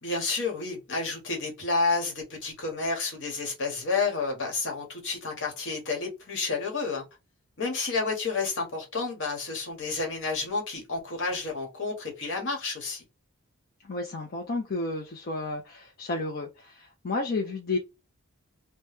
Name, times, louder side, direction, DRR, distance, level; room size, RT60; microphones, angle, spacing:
voice 1, 0.0-7.1 7.6-13.0, left 4 dB, 60° left, 1.3 m, -30 dB
voice 2, 13.9-17.8, left 2 dB, 45° left, 0.6 m, -32 dB
3.1 x 2.1 x 3.3 m
head